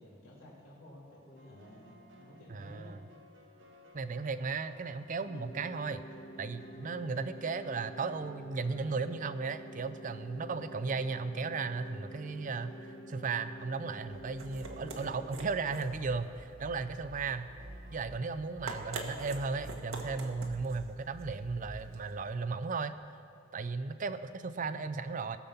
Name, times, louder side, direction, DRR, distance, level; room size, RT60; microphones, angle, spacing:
voice 1, 0.0-3.0, left 1 dB, 85° left, -5 dB, 3.1 m, -53 dB
sound 1, 1.4-19.7, equal, 65° right, 1.2 m, -58 dB
voice 2, 2.5-3.0 3.9-6.0 6.4-17.5 17.9-22.9 23.5-25.4, right 4 dB, 40° right, 12 dB, 0.5 m, -35 dB
sound 2, 5.3-15.3, equal, 45° left, 0.6 m, -49 dB
sound 3, 14.0-22.2, right 2 dB, 85° right, 1.4 m, -45 dB
18.5 x 7.1 x 5.7 m, 2.6 s
head